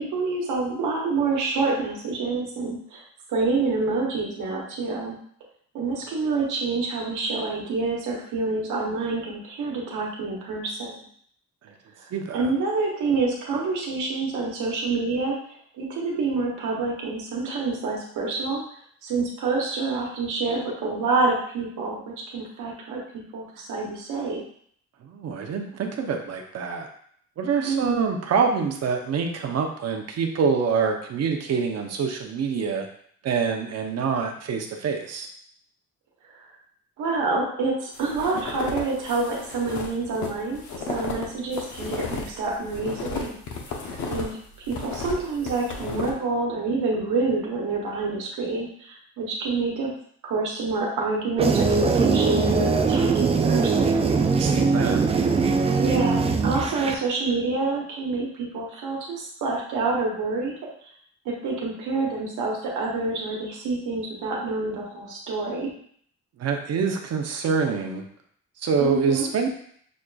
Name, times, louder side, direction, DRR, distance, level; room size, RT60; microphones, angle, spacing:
voice 1, 0.0-3.0 3.3-5.2 5.7-11.0 12.3-15.4 15.8-18.6 19.0-24.4 27.6-28.1 37.0-43.4 44.1-44.4 44.7-49.9 50.2-54.1 55.7-60.5 61.2-65.7 68.8-69.3, right 3 dB, 80° right, -2 dB, 1.1 m, -27 dB
voice 2, 12.1-12.5 25.0-26.9 27.4-32.9 33.2-35.3 43.8-44.1 54.4-55.0 66.4-68.0 68.6-69.7, right 5 dB, 55° right, 3 dB, 0.7 m, -26 dB
sound 1, 37.9-44.3 44.6-46.1, left 4 dB, 70° left, 0.8 m, -34 dB
sound 2, 51.4-56.9, right 4 dB, 20° right, 0.3 m, -21 dB
6.1 x 2.4 x 2.3 m, 0.62 s
cardioid pair, 90°, 30 cm